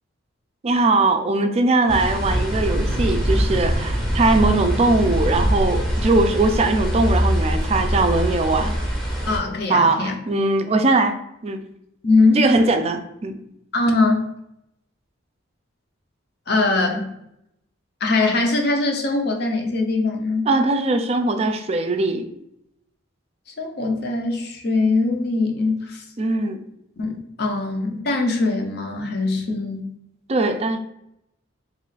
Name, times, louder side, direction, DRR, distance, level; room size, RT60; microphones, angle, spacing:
voice 1, 0.6-8.8 9.7-11.7 12.4-13.4 20.5-22.3 26.2-26.6 30.3-30.8, right 2 dB, 30° right, 7 dB, 0.3 m, -20 dB
sound 1, 1.9-9.4, equal, ahead, 0.7 m, -23 dB
voice 2, 9.3-10.1 12.0-12.5 13.7-14.3 16.5-17.1 18.0-20.5 23.6-26.0 27.0-29.9, left 3 dB, 50° left, 3 dB, 0.6 m, -21 dB
3.0 x 2.4 x 3.9 m, 0.81 s
head